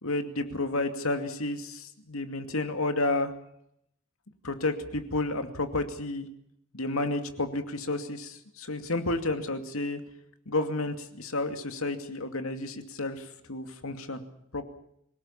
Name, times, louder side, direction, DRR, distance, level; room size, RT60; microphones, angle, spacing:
voice 1, 0.0-3.3 4.4-6.3 6.7-10.0 10.5-14.2 14.5-14.6, left 2 dB, 90° left, 7 dB, 2.4 m, -31 dB
25.0 x 18.0 x 7.3 m, 0.75 s
head